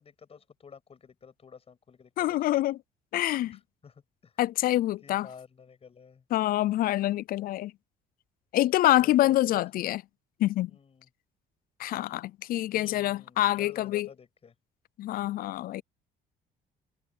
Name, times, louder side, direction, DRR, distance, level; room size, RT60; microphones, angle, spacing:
voice 1, 0.0-2.4 3.3-3.9 4.2-4.4 5.0-6.2 9.0-9.7 10.7-11.1 12.7-14.5, left 6 dB, 35° left, 7.9 m, -51 dB
voice 2, 2.2-2.8 3.1-3.6 4.4-5.3 6.3-7.7 8.5-10.0 10.4-10.7 11.8-14.1 15.0-15.8, left 15 dB, 60° left, 0.4 m, -26 dB
cardioid pair, 110°, 17 cm